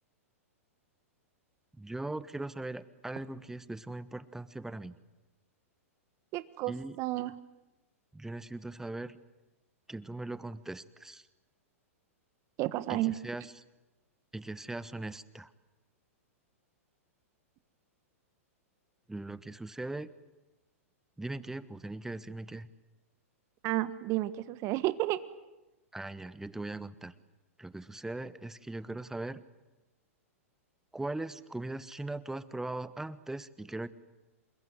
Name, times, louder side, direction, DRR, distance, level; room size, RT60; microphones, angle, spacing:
voice 1, 1.8-5.0 6.7-7.0 8.1-9.2 9.9-11.2 12.9-13.4 14.3-15.5 19.1-20.1 21.2-22.7 25.9-27.1 27.6-29.4 30.9-33.9, right 2 dB, 5° right, 15 dB, 1.3 m, -39 dB
voice 2, 6.3-7.3 12.6-13.2 23.6-25.2, right 16 dB, 40° right, 14 dB, 1.4 m, -31 dB
28.0 x 21.5 x 9.5 m, 1.0 s
hypercardioid pair, 110°, 8 cm